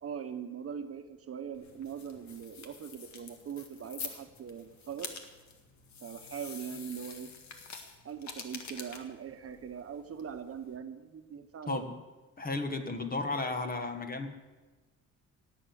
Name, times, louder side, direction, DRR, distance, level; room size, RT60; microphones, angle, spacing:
voice 1, 0.0-5.1 6.0-7.3 8.0-11.9, right 7 dB, 50° right, 8 dB, 1.1 m, -41 dB
sound 1, 1.5-10.8, left 5 dB, 70° left, 1.9 m, -47 dB
voice 2, 12.4-14.3, left 3 dB, 30° left, 6 dB, 1.7 m, -34 dB
18.0 x 7.6 x 7.7 m, 1.2 s
cardioid pair, 90°, 30 cm